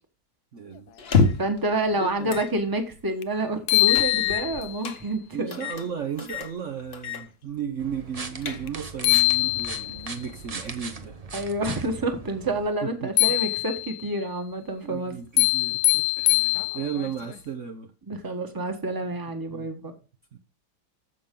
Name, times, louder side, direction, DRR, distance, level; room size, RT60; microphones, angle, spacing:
voice 1, 0.5-0.9 1.9-2.4 5.3-11.2 12.8-13.1 14.8-17.9 19.5-19.7 20.3-20.4, right 7 dB, 50° right, 1.1 m, -35 dB
sound 1, 1.0-1.6 2.3-2.5 2.9-3.0 3.9-5.0 5.5-5.9 6.2-6.5 6.9-7.3 7.6-7.7 8.2-8.9, left 5 dB, 40° left, 1.2 m, -26 dB
voice 2, 1.4-5.7 11.3-15.1 18.1-19.9, right 1 dB, 15° right, 1.2 m, -28 dB
sound 2, 3.2-3.3 3.7-4.8 8.7-8.8 9.0-10.1 13.2-14.1 15.4-17.1, left 20 dB, 75° left, 1.1 m, -23 dB
sound 3, 7.8-12.7, right 4 dB, 30° right, 0.8 m, -39 dB
14.0 x 5.8 x 3.8 m
omnidirectional pair, 1.8 m